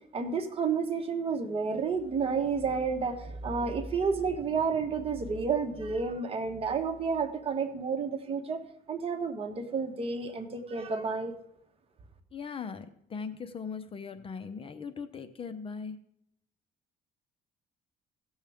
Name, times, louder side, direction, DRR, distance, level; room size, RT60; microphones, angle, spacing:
voice 1, 0.1-11.4, right 5 dB, 35° right, 5 dB, 1.4 m, -31 dB
voice 2, 12.3-16.0, left 5 dB, 35° left, 10 dB, 0.7 m, -39 dB
16.5 x 7.2 x 3.5 m, 0.73 s
cardioid pair, 110°, 17 cm